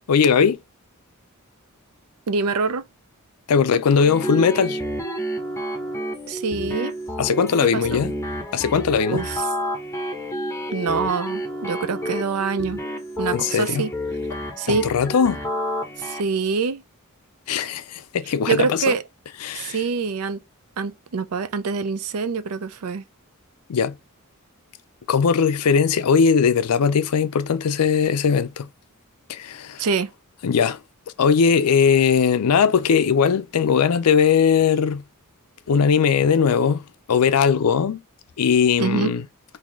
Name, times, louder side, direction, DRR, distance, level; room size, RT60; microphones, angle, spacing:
voice 1, 0.1-0.6 3.5-4.8 7.2-8.1 8.5-9.2 13.3-13.8 14.7-15.4 17.5-18.9 19.4-19.8 23.7-24.0 25.1-28.7 29.3-29.9 30.4-30.8 31.2-35.0 35.7-38.0 38.4-39.2, left 6 dB, 80° left, 0.5 m, -19 dB
voice 2, 2.3-2.8 6.3-6.9 7.6-8.0 9.1-9.4 10.7-12.8 13.2-13.9 14.6-14.9 16.0-16.8 18.5-19.0 19.5-20.4 20.8-23.0 29.8-30.1 38.8-39.1, right 5 dB, 75° right, 0.5 m, -25 dB
sound 1, 4.0-16.2, equal, 15° left, 0.7 m, -30 dB
3.8 x 2.7 x 3.1 m
head